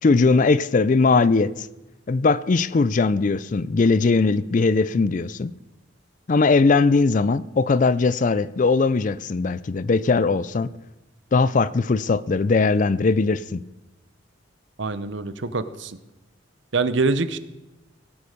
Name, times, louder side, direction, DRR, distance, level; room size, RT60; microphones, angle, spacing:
voice 1, 0.0-1.7 2.1-5.5 6.3-10.7 11.3-13.6, left 4 dB, 40° left, 18 dB, 0.4 m, -20 dB
voice 2, 14.8-16.0 16.7-17.4, right 3 dB, 65° right, 13 dB, 0.8 m, -24 dB
17.0 x 8.5 x 6.5 m, 1.0 s
head